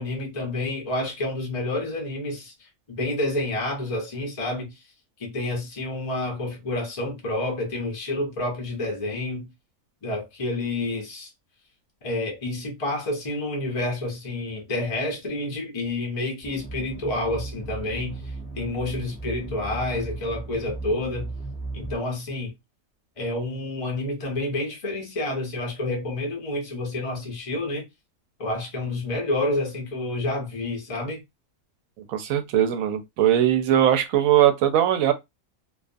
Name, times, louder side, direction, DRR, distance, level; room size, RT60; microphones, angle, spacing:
voice 1, 0.0-4.8 5.2-9.5 10.0-11.3 12.0-21.3 21.7-22.5 23.2-27.9 28.4-31.2, left 2 dB, 40° left, 0.5 m, -29 dB
sound 1, 16.4-22.0, right 2 dB, 5° right, 0.7 m, -36 dB
voice 2, 32.1-35.1, right 11 dB, 75° right, 1.0 m, -20 dB
2.4 x 2.3 x 2.5 m
omnidirectional pair, 1.5 m